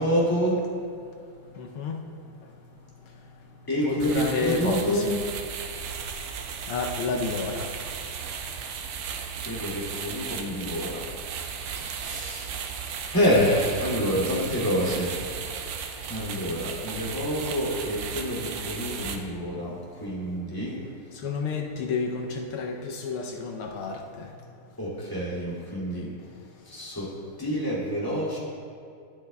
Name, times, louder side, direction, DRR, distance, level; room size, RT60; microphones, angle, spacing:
voice 1, 0.0-5.1 5.4-6.7 8.0-8.3 9.4-21.3 24.8-26.1 26.7-27.1 27.4-28.4, equal, 10° left, -7 dB, 2.1 m, -29 dB
voice 2, 1.5-2.1 2.4-2.5 3.0-3.1 3.8-5.1 6.7-7.9 9.1-9.2 11.8-12.0 21.1-24.3 26.7-26.8, left 4 dB, 80° left, 2 dB, 1.5 m, -31 dB
sound 1, 4.0-19.2, right 6 dB, 80° right, 1.6 m, -35 dB
11.5 x 11.5 x 2.2 m, 2.4 s
omnidirectional pair, 2.4 m